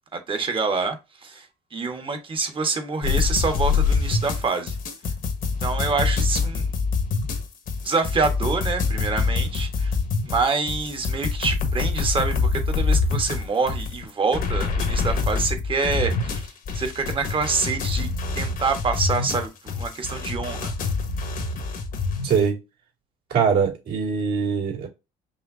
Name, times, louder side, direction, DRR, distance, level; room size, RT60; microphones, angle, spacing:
voice 1, 0.1-4.8 5.6-6.7 7.8-10.0 10.3-20.7, right 4 dB, 30° right, 1.3 m, -26 dB
sound 1, 3.0-22.4, left 4 dB, 55° left, 1.3 m, -25 dB
voice 2, 22.2-22.6 23.3-24.9, right 6 dB, 65° right, 2.9 m, -22 dB
5.5 x 2.9 x 2.6 m
cardioid pair, 110°, 17 cm